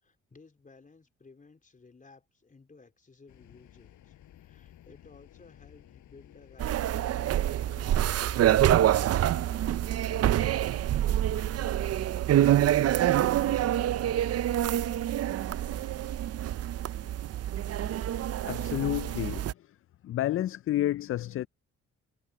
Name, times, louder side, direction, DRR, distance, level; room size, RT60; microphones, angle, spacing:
voice 1, 0.0-10.3 10.6-11.9 12.4-14.4, left 4 dB, 25° left, 4.3 m, -57 dB
sound 1, 3.3-16.2, left 12 dB, 75° left, 6.0 m, -56 dB
sound 2, 6.6-19.5, right 12 dB, 55° right, 0.6 m, -26 dB
voice 2, 18.4-19.5 20.0-21.5, left 13 dB, 45° left, 0.4 m, -30 dB
cardioid pair, 90°, 30 cm